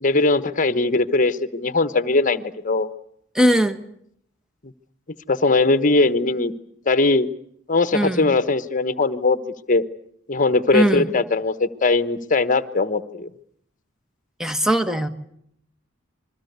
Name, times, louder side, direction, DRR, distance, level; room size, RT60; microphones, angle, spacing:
voice 1, 0.0-2.9 5.3-6.5 6.9-7.3 7.7-9.4 9.7-9.8 10.3-13.3, left 3 dB, 40° left, 12 dB, 1.1 m, -20 dB
voice 2, 3.3-3.8 7.9-8.3 10.7-11.1 14.4-15.1, right 1 dB, 5° right, 8 dB, 1.4 m, -20 dB
27.5 x 22.0 x 8.1 m, 0.71 s
head